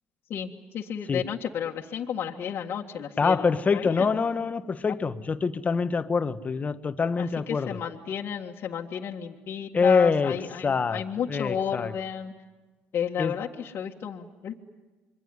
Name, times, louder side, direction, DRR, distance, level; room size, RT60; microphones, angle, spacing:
voice 1, 0.3-4.1 7.2-12.3 12.9-14.6, left 8 dB, 55° left, 1.8 m, -33 dB
voice 2, 3.2-7.8 9.7-10.4 10.6-11.0 11.3-11.9 13.2-13.4, left 5 dB, 30° left, 1.3 m, -25 dB
27.0 x 23.5 x 9.5 m
supercardioid pair, 80°, 5 cm